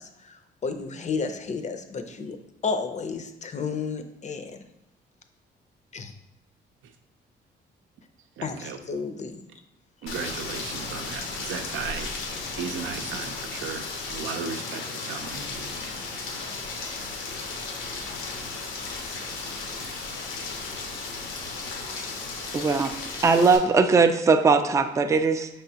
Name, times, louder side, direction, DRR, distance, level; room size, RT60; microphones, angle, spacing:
voice 1, 0.0-2.4 2.6-4.6 5.9-6.1 8.4-9.4, left 5 dB, 35° left, 8 dB, 0.5 m, -32 dB
voice 2, 8.4-8.8 10.0-15.7, right 6 dB, 80° right, 7 dB, 0.6 m, -36 dB
Rain, 10.1-23.6, left 3 dB, 90° left, 0.8 m, -35 dB
voice 3, 22.5-22.9 23.2-25.5, right 4 dB, 15° right, 8 dB, 0.3 m, -20 dB
5.4 x 3.4 x 2.8 m, 0.86 s
cardioid pair, 90°, 20 cm